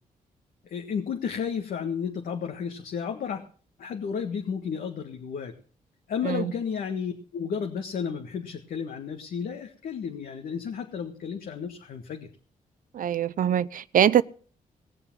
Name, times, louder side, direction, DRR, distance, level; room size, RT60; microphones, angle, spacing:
voice 1, 0.6-3.4 3.8-5.5 6.1-12.3, left 7 dB, 80° left, 1.7 m, -32 dB
voice 2, 12.9-14.2, right 10 dB, 65° right, 0.7 m, -23 dB
19.0 x 7.0 x 7.4 m
cardioid pair, 80°, 15 cm